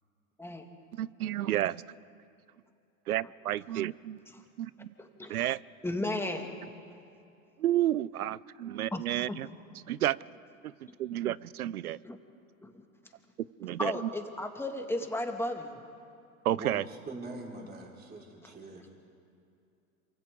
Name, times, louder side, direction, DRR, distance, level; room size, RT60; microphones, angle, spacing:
voice 1, 1.0-1.8 3.1-4.2 4.6-4.9 5.3-5.6 7.6-9.5 9.9-10.2 10.6-10.7 11.0-12.0 13.6-14.1 16.4-16.8, right 13 dB, 85° right, 22 dB, 0.6 m, -31 dB
voice 2, 5.8-6.5 8.9-9.0 9.3-9.4 12.0-12.2 12.6-12.7 13.8-15.8, left 1 dB, 5° left, 4 dB, 2.1 m, -34 dB
voice 3, 16.6-18.9, right 2 dB, 20° right, -1 dB, 4.6 m, -43 dB
27.5 x 25.0 x 3.8 m, 2.6 s
hypercardioid pair, 95°, 42 cm